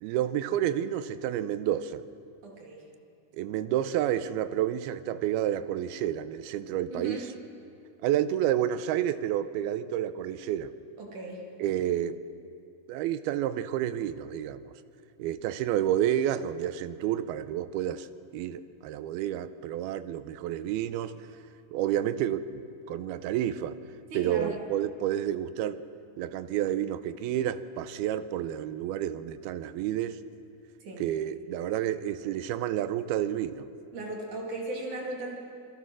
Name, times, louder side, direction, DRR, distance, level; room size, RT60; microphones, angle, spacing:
voice 1, 0.0-2.0 3.3-7.2 8.0-10.7 11.6-12.2 12.9-14.7 15.2-18.1 18.3-21.2 21.7-23.8 24.1-25.8 26.2-30.2 31.0-33.7, right 11 dB, 90° right, 12 dB, 2.7 m, -30 dB
voice 2, 2.4-2.9 6.9-7.3 11.0-11.4 24.1-24.6 30.8-31.0 33.9-35.4, right 2 dB, 55° right, -1 dB, 4.0 m, -37 dB
27.0 x 21.5 x 6.3 m, 2.5 s
omnidirectional pair, 4.4 m